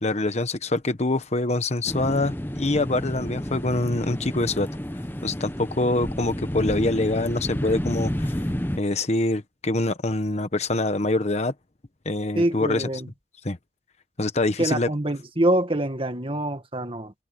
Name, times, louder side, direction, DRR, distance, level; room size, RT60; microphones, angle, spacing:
voice 1, 0.0-4.7 5.2-8.4 8.8-11.5 12.0-12.9 13.4-13.6 14.2-14.9, left 2 dB, 40° left, 1.1 m, -25 dB
sound 1, 1.8-8.8, equal, 10° left, 1.2 m, -30 dB
voice 2, 12.4-13.1 14.6-17.1, right 1 dB, 30° right, 2.0 m, -25 dB
head